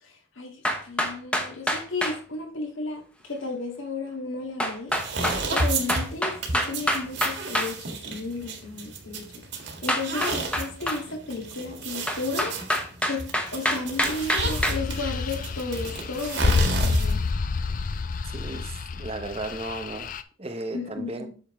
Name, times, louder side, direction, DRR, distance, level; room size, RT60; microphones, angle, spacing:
voice 1, 0.0-12.6 13.1-17.2 20.7-21.3, left 3 dB, 75° left, 1.9 m, -34 dB
sound 1, 0.6-2.2 4.6-7.7 9.9-11.0 12.1-14.8, equal, 5° left, 0.9 m, -26 dB
sound 2, 4.9-17.3, right 3 dB, 55° right, 1.6 m, -32 dB
sound 3, 14.0-20.2, left 4 dB, 40° left, 0.4 m, -28 dB
voice 2, 18.2-20.1 20.4-21.3, right 2 dB, 30° right, 0.8 m, -35 dB
8.5 x 6.4 x 3.1 m
head